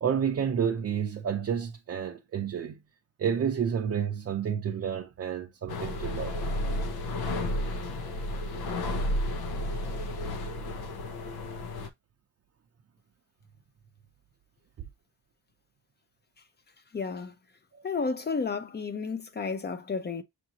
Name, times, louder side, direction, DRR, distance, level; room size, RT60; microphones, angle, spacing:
voice 1, 0.0-2.8 3.2-6.3, right 8 dB, 40° right, 0.6 m, -30 dB
sound 1, 5.7-11.9, left 1 dB, 90° left, 0.8 m, -32 dB
voice 2, 16.9-17.3 17.8-20.2, left 4 dB, 30° left, 0.6 m, -32 dB
6.5 x 2.6 x 2.8 m
wide cardioid pair, 155°, 36 cm